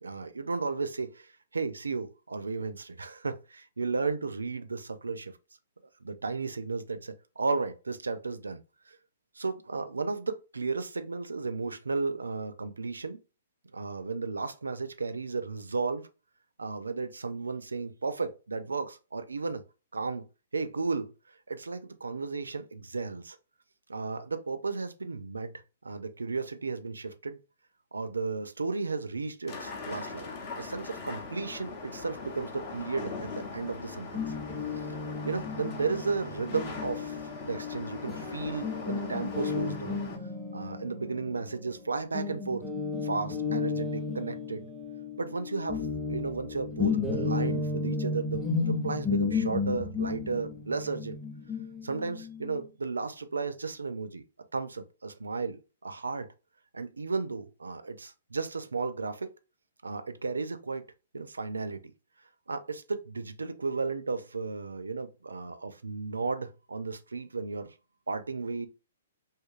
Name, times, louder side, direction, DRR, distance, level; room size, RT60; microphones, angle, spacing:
voice 1, 0.0-5.3 6.0-8.6 8.9-9.0 9.4-13.2 13.7-16.1 16.6-19.6 19.9-20.3 20.5-23.4 23.9-25.5 25.8-27.4 27.9-30.3 30.6-34.3 35.2-40.0 40.5-42.7 43.0-44.7 45.2-51.2 51.8-54.2 54.5-56.3 56.7-59.3 59.8-60.8 61.1-61.9 62.5-67.7 68.1-68.7, right 4 dB, 75° right, 0.3 m, -34 dB
sound 1, 29.5-40.2, left 4 dB, 40° left, 0.6 m, -41 dB
Guitar, 34.1-41.8 42.1-52.6, left 4 dB, 5° right, 0.6 m, -33 dB
2.7 x 2.4 x 2.4 m
figure-of-eight pair, 120°, 0 cm